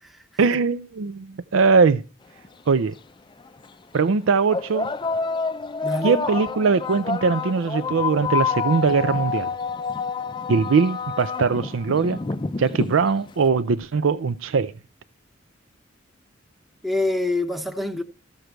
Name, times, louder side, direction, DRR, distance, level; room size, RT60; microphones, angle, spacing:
voice 1, 0.4-2.0 2.7-2.9 3.9-4.9 6.0-9.5 10.5-12.2 12.6-14.7, right 5 dB, 80° right, 0.5 m, -21 dB
sound 1, 2.4-2.5 3.5-3.6 4.5-13.4, left 5 dB, 25° left, 0.4 m, -28 dB
voice 2, 5.8-6.2 16.8-18.0, left 2 dB, ahead, 0.8 m, -26 dB
14.0 x 6.6 x 4.5 m
head